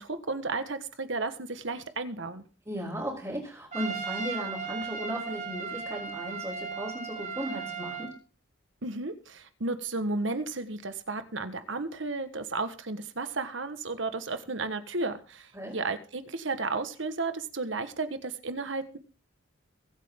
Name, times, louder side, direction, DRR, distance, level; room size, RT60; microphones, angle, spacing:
voice 1, 0.0-2.4 8.8-19.0, right 3 dB, 65° right, 10 dB, 1.5 m, -33 dB
voice 2, 2.7-8.1 15.5-15.8, equal, 15° right, -6 dB, 4.1 m, -36 dB
Trumpet, 3.7-8.1, right 6 dB, 35° right, 3.1 m, -36 dB
22.5 x 8.5 x 3.8 m, 0.36 s
head